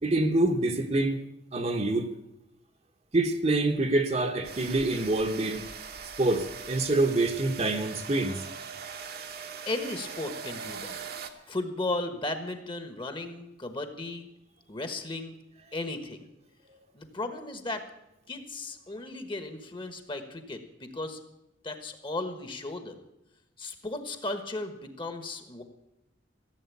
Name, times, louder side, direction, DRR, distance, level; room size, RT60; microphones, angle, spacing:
voice 1, 0.0-1.2 1.5-2.1 3.1-5.7 6.2-8.4, right 2 dB, 35° right, 1.0 m, -26 dB
sound 1, 4.4-11.3, right 6 dB, 55° right, 1.2 m, -41 dB
voice 2, 9.7-11.0 11.5-14.3 14.7-15.3 15.7-16.2 16.9-17.8 18.3-21.2 21.6-23.0 23.6-25.6, left 2 dB, 30° left, 1.3 m, -35 dB
15.0 x 7.7 x 8.4 m
head